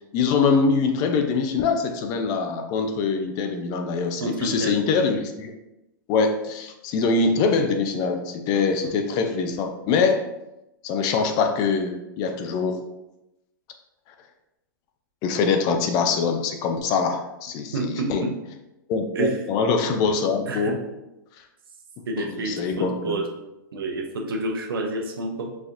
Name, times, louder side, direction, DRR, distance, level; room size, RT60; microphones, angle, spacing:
voice 1, 0.1-5.5 6.1-10.3 10.8-12.8 15.2-18.2 18.9-20.8 22.2-23.2, left 4 dB, 35° left, 5 dB, 0.4 m, -23 dB
voice 2, 4.2-4.8 17.7-18.4 19.1-19.4 20.5-20.8 22.1-23.3 23.7-25.6, right 2 dB, 85° right, 2 dB, 0.7 m, -28 dB
4.0 x 2.8 x 2.5 m, 0.92 s
hypercardioid pair, 130°, 12 cm